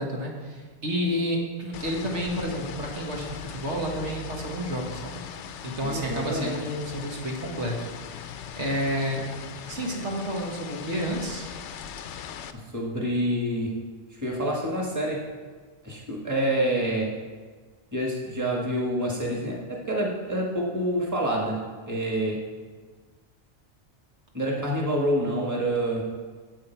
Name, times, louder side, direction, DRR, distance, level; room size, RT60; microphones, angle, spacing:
voice 1, 0.0-5.2 5.6-9.3 9.7-11.4, equal, 85° right, -1 dB, 1.9 m, -30 dB
sound 1, 1.7-12.5, left 8 dB, 85° left, 0.9 m, -40 dB
voice 2, 5.8-6.6 12.5-13.8 14.1-15.3 15.8-17.2 17.9-22.4 24.3-26.0, right 1 dB, 15° right, -2 dB, 1.5 m, -27 dB
10.0 x 7.6 x 4.5 m, 1.5 s
omnidirectional pair, 1.2 m